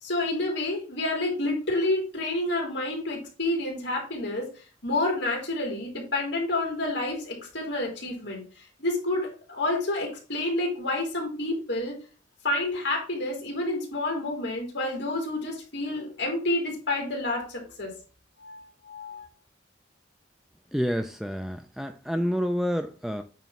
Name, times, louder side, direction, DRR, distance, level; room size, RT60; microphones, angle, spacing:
voice 1, 0.0-4.5 4.8-8.4 8.8-11.9 12.4-17.9 18.4-19.3, left 2 dB, 65° left, 3.3 m, -29 dB
voice 2, 20.7-23.2, equal, ahead, 0.4 m, -28 dB
9.1 x 3.1 x 5.6 m
head